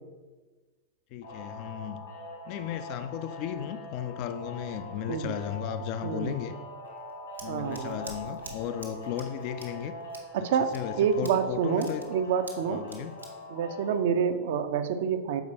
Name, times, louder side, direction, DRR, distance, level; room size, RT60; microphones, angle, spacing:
voice 1, 1.1-2.1 2.4-6.6 7.4-9.9 10.4-12.1 12.7-13.2, left 9 dB, 45° left, 10 dB, 0.4 m, -35 dB
sound 1, 1.2-14.0, left 2 dB, 70° left, 1.6 m, -43 dB
voice 2, 6.0-6.4 7.5-8.0 10.3-12.8 13.5-15.4, right 7 dB, 55° right, 9 dB, 0.5 m, -28 dB
Scissors, 6.8-14.6, right 2 dB, 85° right, 1.1 m, -49 dB
6.9 x 4.6 x 4.1 m, 1.3 s
figure-of-eight pair, 90°, 0 cm